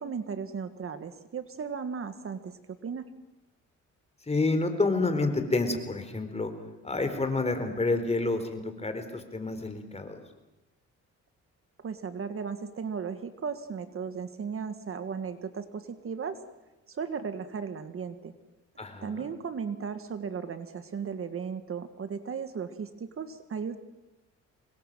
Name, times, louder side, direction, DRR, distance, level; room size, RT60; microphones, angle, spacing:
voice 1, 0.0-3.0 11.8-16.4 16.9-18.3 19.0-23.8, right 6 dB, 45° right, 10 dB, 1.7 m, -36 dB
voice 2, 4.3-6.5 6.8-10.1 18.8-19.3, left 3 dB, 20° left, 7 dB, 4.2 m, -29 dB
25.5 x 21.0 x 7.6 m, 1.0 s
cardioid pair, 90°, 30 cm